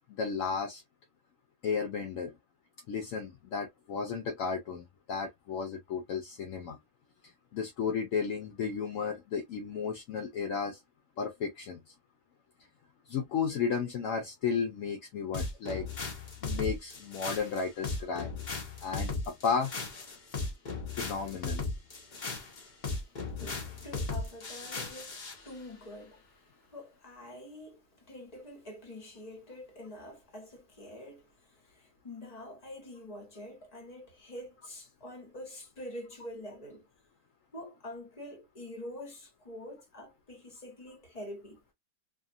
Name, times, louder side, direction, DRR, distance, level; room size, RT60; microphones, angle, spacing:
voice 1, 0.2-0.8 1.6-2.3 2.9-6.8 7.5-10.8 11.2-11.8 13.1-15.9 16.4-18.3 18.8-19.7 20.9-21.6, left 6 dB, 70° left, 0.9 m, -33 dB
sound 1, 15.3-25.4, left 3 dB, 45° left, 0.6 m, -37 dB
voice 2, 23.4-36.9 37.5-41.6, left 1 dB, 25° left, 1.2 m, -46 dB
2.7 x 2.4 x 2.6 m
omnidirectional pair, 1.7 m